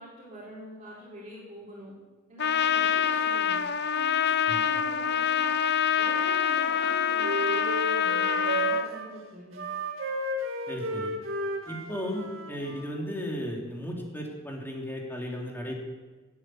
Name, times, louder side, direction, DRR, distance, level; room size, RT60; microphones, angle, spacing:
voice 1, 0.0-1.9 2.3-3.6 3.9-5.6 6.0-9.6, equal, 35° right, -9 dB, 4.5 m, -44 dB
Trumpet, 2.4-8.9, left 8 dB, 55° left, 0.7 m, -26 dB
Wind instrument woodwind instrument, 6.1-9.1 9.5-12.9, right 2 dB, 70° right, 2.3 m, -34 dB
voice 2, 10.7-11.1 11.7-15.7, equal, 10° left, -1 dB, 3.1 m, -35 dB
12.0 x 11.0 x 9.4 m, 1.3 s
head